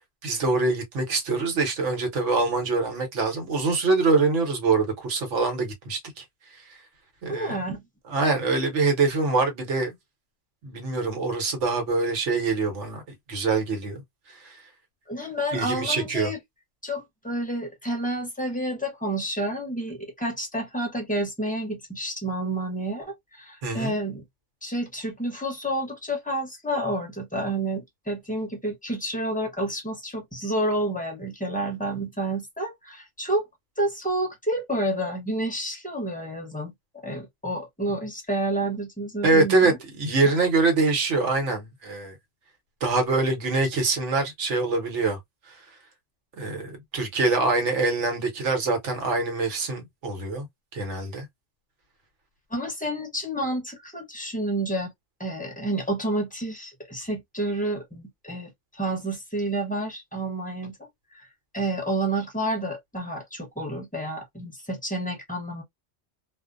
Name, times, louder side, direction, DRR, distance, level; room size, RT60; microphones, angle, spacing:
voice 1, 0.2-6.2 6.5-6.8 7.2-7.6 8.1-9.9 10.6-13.0 13.3-14.0 14.4-14.6 15.5-16.3 23.6-23.9 39.2-42.2 42.8-45.2 46.3-50.5 50.7-51.3, right 3 dB, 75° right, 1.3 m, -24 dB
voice 2, 7.3-7.8 15.1-16.4 16.8-24.2 24.6-33.4 33.8-36.7 37.0-39.8 40.2-40.4 52.5-54.9 55.2-60.8 61.1-61.3 61.5-65.6, right 1 dB, 10° left, 0.7 m, -29 dB
2.5 x 2.1 x 2.4 m
omnidirectional pair, 1.2 m